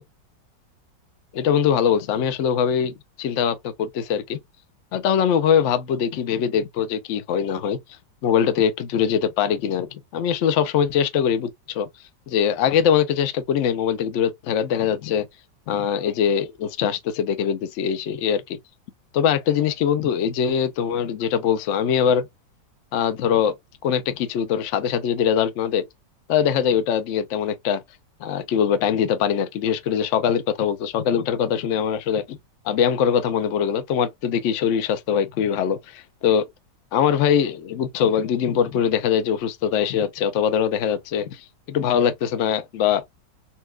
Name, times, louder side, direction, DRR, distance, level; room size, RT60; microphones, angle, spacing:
voice 1, 1.3-4.4 4.9-7.8 8.2-11.9 12.3-15.3 15.7-18.6 19.1-22.3 22.9-23.5 23.8-25.9 26.3-27.8 28.2-32.4 32.6-36.5 36.9-43.0, left 8 dB, 85° left, 0.6 m, -22 dB
4.2 x 2.2 x 2.3 m
omnidirectional pair, 2.0 m